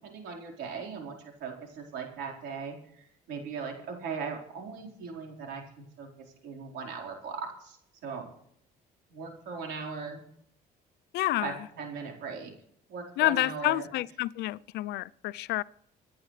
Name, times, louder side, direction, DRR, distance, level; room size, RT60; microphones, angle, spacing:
voice 1, 0.0-6.1 6.4-7.8 8.0-8.3 9.1-10.2 11.4-12.5 12.9-13.9, right 5 dB, 85° right, 4.4 m, -39 dB
voice 2, 11.1-11.6 13.2-15.6, left 16 dB, 80° left, 0.5 m, -29 dB
26.0 x 10.0 x 3.3 m
cardioid pair, 110°, 17 cm